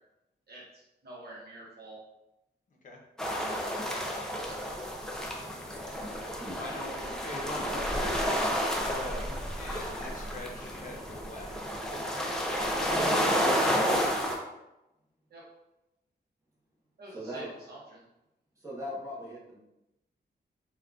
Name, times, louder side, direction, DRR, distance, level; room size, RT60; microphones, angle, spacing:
voice 1, 0.5-2.0 12.7-12.8 15.3-15.4 17.0-18.0, right 1 dB, 60° right, -5 dB, 0.7 m, -47 dB
voice 2, 2.7-3.0 6.5-11.5 12.7-13.0, left 2 dB, 45° left, -1 dB, 0.6 m, -43 dB
sound 1, 3.2-14.4, equal, 5° left, 0.4 m, -31 dB
voice 3, 17.1-17.5 18.6-19.6, equal, 15° right, -6 dB, 0.8 m, -39 dB
3.5 x 2.3 x 2.3 m, 0.93 s
wide cardioid pair, 155°, 19 cm